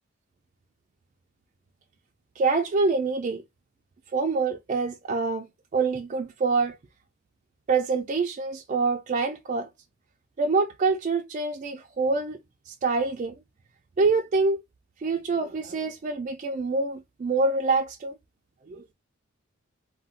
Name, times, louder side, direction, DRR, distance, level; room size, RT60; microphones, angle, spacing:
voice 1, 2.4-3.4 4.1-5.5 5.7-6.8 7.7-9.7 10.4-12.4 12.7-13.3 14.0-14.6 15.0-18.2 18.7-18.8, right 4 dB, 35° right, 0.3 m, -26 dB
2.4 x 2.1 x 3.9 m
head